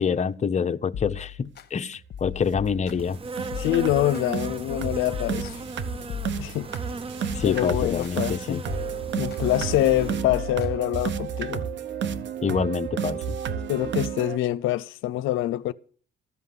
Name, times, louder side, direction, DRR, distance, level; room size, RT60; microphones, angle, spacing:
voice 1, 0.0-3.2 7.4-8.6 12.4-13.4, left 6 dB, 35° left, 0.8 m, -26 dB
sound 1, 0.9-1.7 2.1-3.2 3.5-4.3 4.7-6.8 7.3-8.3 8.7-9.4 9.8-11.3, left 10 dB, 55° left, 1.1 m, -38 dB
sound 2, 1.9-2.0 2.4-2.6 2.9-3.1 3.4-14.4, right 7 dB, 65° right, 1.2 m, -31 dB
Insect, 3.0-10.2, right 3 dB, 30° right, 0.7 m, -36 dB
voice 2, 3.6-5.6 6.4-7.0 7.4-8.6 9.2-11.7 13.7-15.7, left 15 dB, 90° left, 0.6 m, -25 dB
14.5 x 5.6 x 9.6 m
cardioid pair, 90°, 20 cm